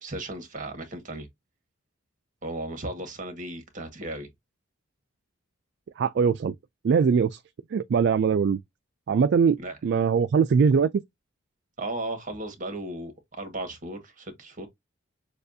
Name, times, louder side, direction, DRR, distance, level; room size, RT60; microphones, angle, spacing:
voice 1, 0.0-1.3 2.4-4.3 9.6-9.8 11.8-14.7, right 2 dB, 40° right, 1.6 m, -35 dB
voice 2, 6.0-6.5 6.8-7.4 7.7-8.6 9.1-10.9, right 6 dB, 55° right, 0.3 m, -22 dB
6.6 x 2.4 x 2.6 m
head